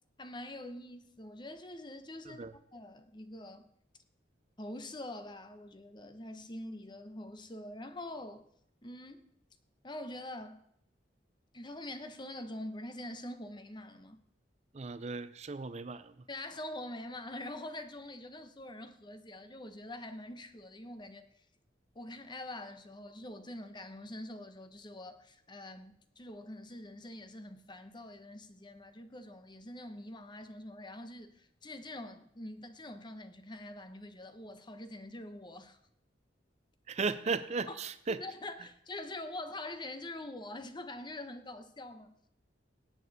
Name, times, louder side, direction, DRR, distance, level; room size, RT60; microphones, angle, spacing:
voice 1, 0.2-2.4 2.7-3.7 4.6-8.5 8.8-9.2 9.8-10.6 11.5-14.2 16.3-21.4 21.9-35.8 37.7-37.8 38.1-42.1, left 1 dB, 25° left, 0.9 m, -45 dB
voice 2, 14.7-16.1 36.9-38.2, right 4 dB, 40° right, 0.5 m, -35 dB
17.5 x 8.5 x 4.1 m
head